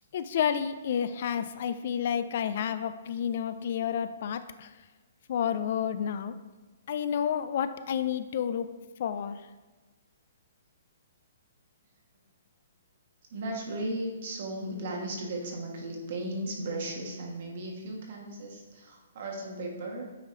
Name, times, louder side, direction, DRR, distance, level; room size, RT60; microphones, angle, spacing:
voice 1, 0.1-4.7 5.3-6.4 6.9-8.7 9.0-9.4, left 8 dB, 55° left, 12 dB, 0.3 m, -30 dB
voice 2, 13.3-20.0, right 1 dB, 55° right, 0 dB, 1.5 m, -36 dB
8.7 x 3.1 x 3.8 m, 1.2 s
hypercardioid pair, 135°, 0 cm